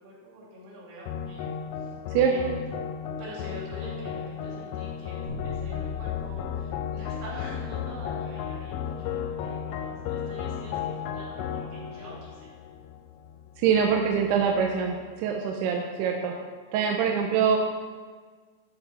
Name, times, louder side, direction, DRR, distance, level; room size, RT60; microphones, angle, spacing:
voice 1, 0.0-1.5 1.8-2.5 3.2-12.5, equal, 75° right, -6 dB, 4.6 m, -44 dB
sound 1, 1.1-13.5, left 7 dB, 85° left, 2.3 m, -35 dB
Bass guitar, 5.2-15.0, left 9 dB, 55° right, 2.6 m, -40 dB
voice 2, 13.6-16.3 16.7-17.6, right 7 dB, 90° right, 1 dB, 2.7 m, -24 dB
11.5 x 6.9 x 4.3 m, 1.5 s
omnidirectional pair, 4.7 m